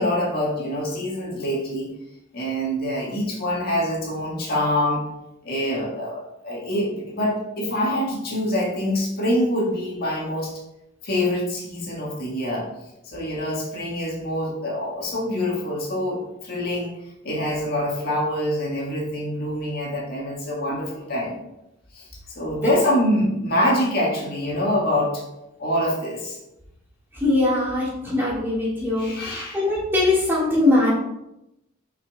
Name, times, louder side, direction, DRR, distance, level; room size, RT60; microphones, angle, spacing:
voice 1, 0.0-1.9 2.3-5.0 5.4-10.5 11.0-12.7 13.1-16.9 17.2-21.4 21.9-22.1 22.4-25.2 25.6-26.4 29.0-29.6, left 1 dB, 50° left, -4 dB, 1.8 m, -25 dB
voice 2, 27.1-30.9, left 2 dB, 10° right, -7 dB, 2.6 m, -21 dB
6.4 x 5.4 x 3.7 m, 0.86 s
head